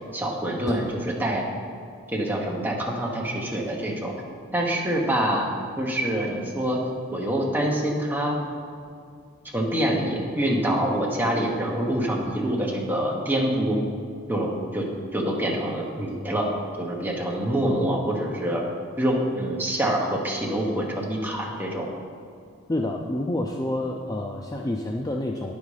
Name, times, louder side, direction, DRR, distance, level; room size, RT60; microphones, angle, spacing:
voice 1, 0.1-1.4 2.1-4.1 4.5-5.5 5.8-6.8 7.1-8.4 9.5-13.8 14.3-14.9 15.1-16.5 16.8-18.7 19.0-21.9, right 1 dB, 10° right, -2 dB, 1.1 m, -25 dB
voice 2, 22.7-25.5, left 1 dB, 15° left, 1 dB, 0.4 m, -28 dB
9.7 x 5.4 x 4.9 m, 2.3 s
head